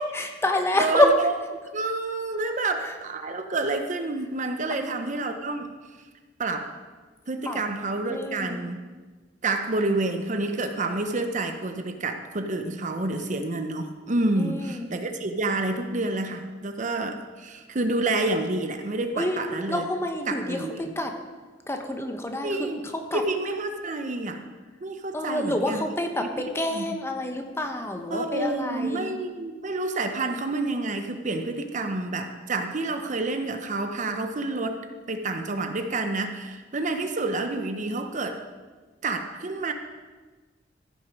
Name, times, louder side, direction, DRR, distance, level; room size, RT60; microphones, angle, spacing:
voice 1, 0.0-1.1 2.8-2.9 4.8-5.0 7.5-7.6 8.1-8.7 14.4-14.9 19.1-19.4 19.7-21.1 21.7-23.2 25.1-29.1, left 1 dB, 15° left, 4 dB, 0.9 m, -28 dB
voice 2, 0.8-1.3 1.7-5.7 6.4-6.7 7.3-8.8 9.4-19.8 20.3-20.9 22.4-22.8 23.1-24.4 24.8-25.8 26.2-27.0 28.1-34.8 35.1-38.4 39.0-39.7, right 2 dB, 40° right, 6 dB, 0.7 m, -29 dB
14.5 x 6.5 x 5.2 m, 1.3 s
head